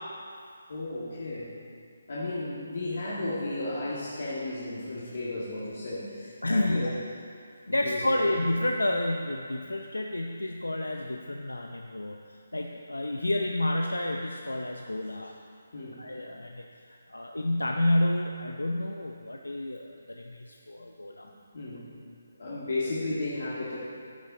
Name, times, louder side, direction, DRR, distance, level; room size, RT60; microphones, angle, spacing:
voice 1, 0.7-1.5 2.1-6.9 7.7-8.3 15.7-16.0 21.5-21.9 22.4-23.8, left 2 dB, 60° left, -8 dB, 2.2 m, -34 dB
voice 2, 6.4-7.0 7.7-12.2 12.5-15.3 16.0-16.6 16.9-21.3, left 1 dB, 85° left, 3 dB, 0.6 m, -30 dB
11.0 x 10.5 x 4.1 m, 2.3 s
figure-of-eight pair, 150°, 0 cm